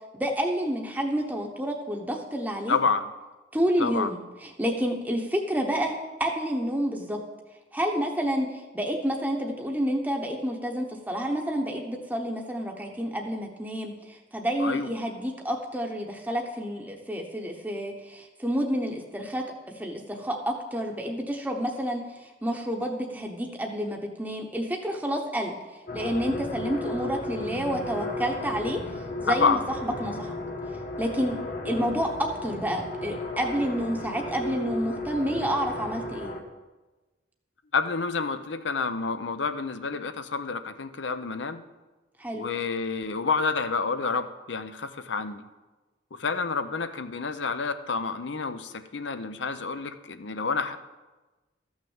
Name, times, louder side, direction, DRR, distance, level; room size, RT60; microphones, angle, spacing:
voice 1, 0.1-2.8 3.5-7.2 7.7-19.4 19.7-25.6 25.9-28.8 29.2-30.3 31.0-31.4 31.6-36.4 42.2-42.4, equal, 10° right, 1 dB, 1.0 m, -29 dB
voice 2, 2.7-3.1 3.8-4.1 14.6-14.9 29.3-29.6 37.7-41.6 42.3-45.5 46.2-50.8, left 4 dB, 75° left, 10 dB, 0.7 m, -29 dB
sound 1, 25.9-36.4, left 2 dB, 45° left, 1.2 m, -34 dB
13.5 x 6.3 x 7.2 m, 1.2 s
head